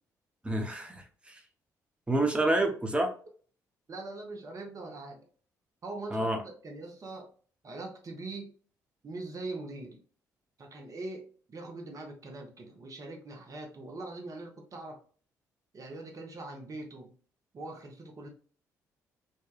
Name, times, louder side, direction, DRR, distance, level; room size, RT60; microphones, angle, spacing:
voice 1, 0.4-1.4 2.1-3.1 6.1-6.4, right 1 dB, 15° right, 3 dB, 0.8 m, -28 dB
voice 2, 3.9-5.3 5.8-7.3 7.6-8.5 9.0-10.0 10.6-15.0 15.7-17.1 17.5-18.3, right 2 dB, 40° right, 2 dB, 0.9 m, -42 dB
2.7 x 2.3 x 2.4 m, 0.42 s
hypercardioid pair, 45°, 9 cm